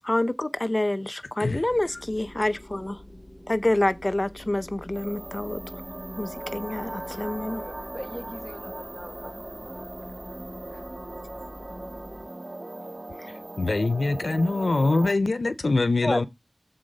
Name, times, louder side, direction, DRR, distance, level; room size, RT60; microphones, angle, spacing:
voice 1, 0.0-3.0 3.5-5.6 6.2-7.6 13.2-13.3 16.0-16.2, left 1 dB, 35° left, 0.6 m, -27 dB
sound 1, 1.7-12.3, left 1 dB, 10° left, 1.5 m, -46 dB
sound 2, 4.9-15.1, right 1 dB, 50° right, 1.5 m, -39 dB
voice 2, 7.1-9.9 10.7-10.9, equal, 15° right, 1.4 m, -43 dB
voice 3, 13.3-16.3, left 3 dB, 80° left, 0.5 m, -24 dB
7.6 x 3.9 x 5.2 m
wide cardioid pair, 45°, 0 cm